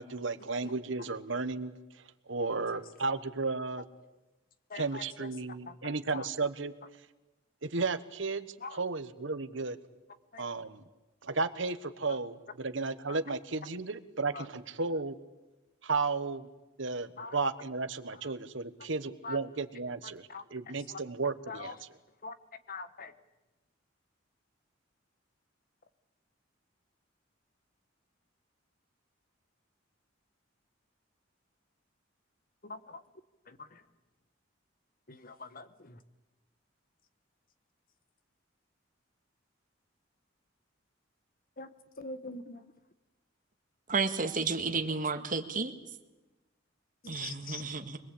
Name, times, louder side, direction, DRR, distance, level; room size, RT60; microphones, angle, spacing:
voice 1, 0.0-1.7 2.3-3.8 4.7-6.7 7.6-9.8 10.4-10.8 11.2-15.2 15.8-16.5 16.8-21.8, right 3 dB, 70° right, 1.3 m, -34 dB
voice 2, 4.7-5.3 5.7-6.3 8.6-8.8 10.3-10.4 12.1-12.2 14.3-14.5 17.2-17.4 18.2-18.3 19.2-19.4 20.3-20.4 20.9-21.0 21.5-21.8 22.2-22.3 22.7-23.1 32.6-33.0 33.5-33.8 35.1-36.0 41.6-41.7 42.0-42.7 44.8-44.9 47.0-47.6, left 3 dB, 45° left, 1.3 m, -43 dB
voice 3, 43.9-45.7 47.1-48.0, right 4 dB, 45° right, 1.8 m, -32 dB
25.0 x 20.5 x 8.6 m
head